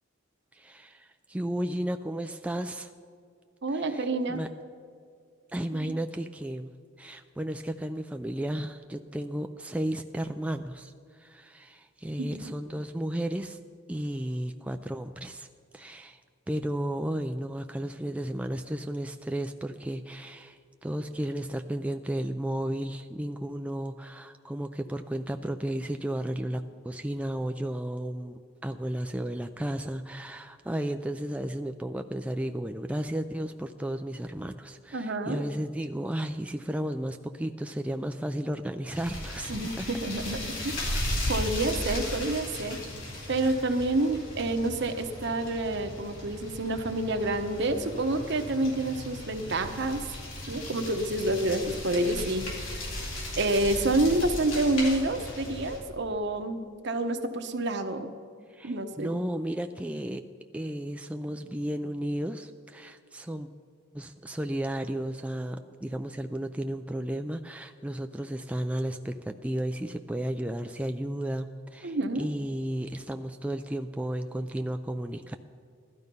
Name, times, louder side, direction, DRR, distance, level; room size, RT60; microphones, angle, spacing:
voice 1, 0.5-2.9 3.7-4.5 5.5-13.6 13.9-15.5 15.7-16.2 16.5-39.9 58.5-60.2 60.5-63.5 63.9-75.4, right 1 dB, 5° right, 6 dB, 0.3 m, -33 dB
voice 2, 3.6-4.4 5.8-5.9 12.2-12.5 34.9-35.4 39.5-40.8 41.3-42.8 43.3-50.0 50.5-52.5 53.4-58.1 58.6-59.1 71.8-72.3, right 2 dB, 60° right, 7 dB, 1.0 m, -28 dB
sound 1, 38.9-55.8, left 1 dB, 70° left, 4.1 m, -36 dB
16.0 x 12.5 x 5.4 m, 2.1 s
head